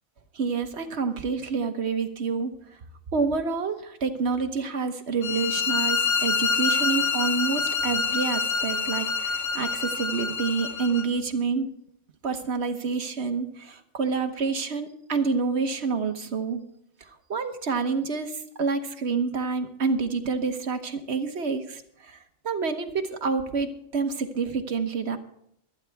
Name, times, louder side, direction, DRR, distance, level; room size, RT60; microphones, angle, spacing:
voice 1, 0.3-2.5 3.1-11.7 12.2-16.6 17.3-22.2 22.4-25.2, right 5 dB, 55° right, 7 dB, 1.3 m, -28 dB
sound 1, 5.2-11.1, left 5 dB, 70° left, 1.2 m, -26 dB
24.0 x 9.5 x 3.5 m, 0.73 s
omnidirectional pair, 1.4 m